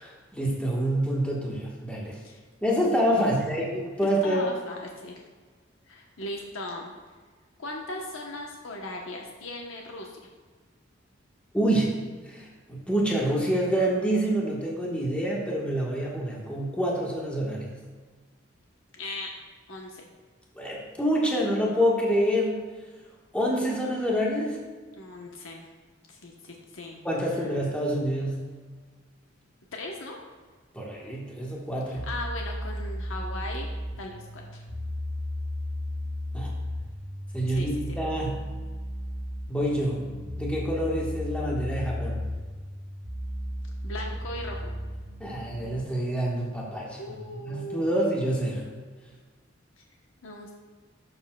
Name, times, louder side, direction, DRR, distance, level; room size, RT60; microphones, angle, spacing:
voice 1, 0.0-2.2 2.6-4.4 11.5-12.0 12.3-17.7 20.5-22.6 23.3-24.6 27.0-28.4 30.7-32.1 36.3-36.5 37.3-38.4 39.5-40.0 40.4-42.2 45.2-47.1 47.4-48.7, equal, 5° left, -4 dB, 1.3 m, -27 dB
voice 2, 3.2-3.5 4.2-5.2 5.9-6.9 7.6-10.3 18.9-19.3 19.7-20.1 25.0-25.7 26.1-27.0 29.7-30.2 31.9-33.7 34.0-34.6 37.5-38.0 43.8-44.7 47.0-48.1 50.2-50.5, left 2 dB, 80° left, 0 dB, 0.9 m, -38 dB
sound 1, 31.9-45.8, left 1 dB, 80° right, 1.8 m, -35 dB
12.0 x 7.1 x 2.2 m, 1.5 s
head